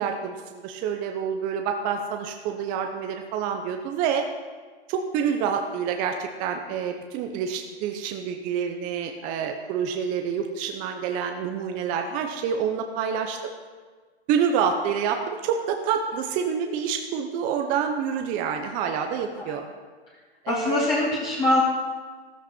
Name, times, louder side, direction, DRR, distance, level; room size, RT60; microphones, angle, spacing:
voice 1, 0.0-4.2 4.9-13.5 14.3-19.7 20.4-20.9, right 7 dB, 25° right, 4 dB, 0.8 m, -27 dB
voice 2, 20.5-21.6, left 1 dB, 15° left, -6 dB, 2.1 m, -23 dB
13.5 x 12.5 x 4.4 m, 1.5 s
hypercardioid pair, 140°, 33 cm